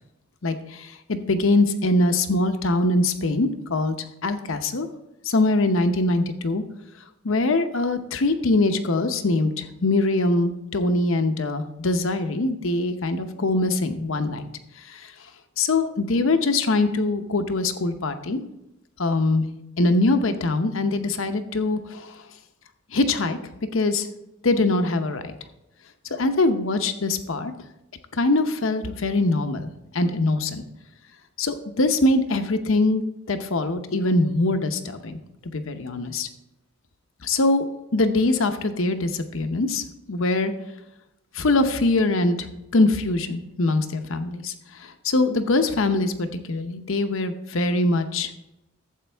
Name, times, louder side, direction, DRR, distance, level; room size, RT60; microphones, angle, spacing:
voice 1, 0.4-4.0 4.2-4.9 5.2-6.6 7.2-14.4 14.9-15.1 15.6-18.4 19.0-19.5 19.8-22.2 22.9-23.4 23.7-24.1 24.4-25.3 26.1-27.5 28.1-30.6 31.4-33.0 33.3-35.2 35.5-36.3 37.2-37.6 37.9-40.5 41.3-44.5 44.8-48.3, left 2 dB, 70° left, 8 dB, 0.8 m, -23 dB
12.0 x 7.9 x 3.4 m, 0.89 s
head